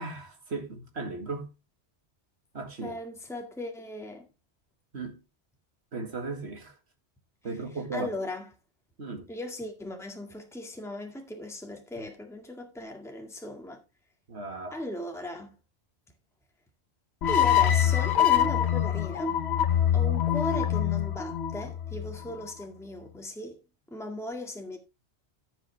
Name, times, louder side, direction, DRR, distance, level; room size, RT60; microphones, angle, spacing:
voice 1, 0.0-1.5 2.5-3.0 4.9-5.2 5.9-6.7 7.4-8.1 9.0-9.3 14.3-14.8, right 3 dB, 70° right, 2.3 m, -36 dB
voice 2, 2.8-4.3 7.9-8.5 9.3-13.8 14.7-15.6 17.3-19.4 19.9-23.6 23.9-24.8, left 1 dB, ahead, 1.9 m, -38 dB
sound 1, 17.2-22.4, left 10 dB, 70° left, 1.2 m, -25 dB
15.5 x 6.1 x 3.4 m
omnidirectional pair, 1.2 m